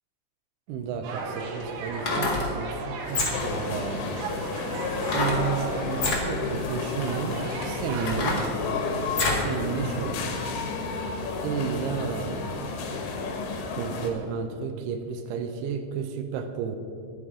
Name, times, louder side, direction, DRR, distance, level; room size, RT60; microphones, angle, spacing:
sound 1, 0.7-0.8 1.9-2.5 3.0-3.6 5.1-5.4 5.9-6.2 7.0-7.1 7.6-9.5 9.9-10.0, left 3 dB, 60° left, 1.2 m, -27 dB
voice 1, 0.7-4.1 5.1-8.5 9.2-10.3 11.4-13.0 13.8-16.8, right 6 dB, 85° right, 6 dB, 2.4 m, -32 dB
sound 2, 1.0-8.3, right 3 dB, 70° right, 2.4 m, -37 dB
sound 3, 3.3-14.1, left 4 dB, 80° left, 3.6 m, -32 dB
11.0 x 10.0 x 4.9 m, 2.5 s
omnidirectional pair, 5.4 m